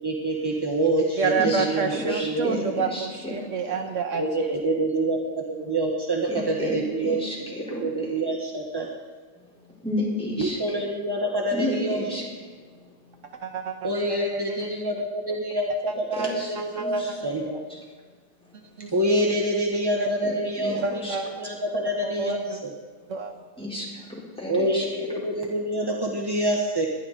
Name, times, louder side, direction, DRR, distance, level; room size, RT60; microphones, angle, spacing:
voice 1, 0.0-2.5 4.2-7.2 7.7-8.9 10.4-12.0 13.8-17.6 18.9-22.7 24.5-26.9, right 1 dB, 20° right, -1 dB, 0.6 m, -26 dB
voice 2, 1.2-4.5 13.4-14.6 16.1-16.3 16.8-16.9 18.8-18.9 20.8-21.2 22.0-22.6 23.1-23.3, right 5 dB, 80° right, 5 dB, 0.6 m, -29 dB
voice 3, 1.9-3.3 3.7-3.8 4.1-4.2 6.3-8.1 9.8-10.8 11.5-12.2 16.1-17.4 17.7-17.8 20.2-21.2 23.6-24.0 24.4-24.8, left 1 dB, ahead, -5 dB, 3.9 m, -32 dB
21.0 x 11.5 x 4.1 m, 1.5 s
omnidirectional pair, 2.4 m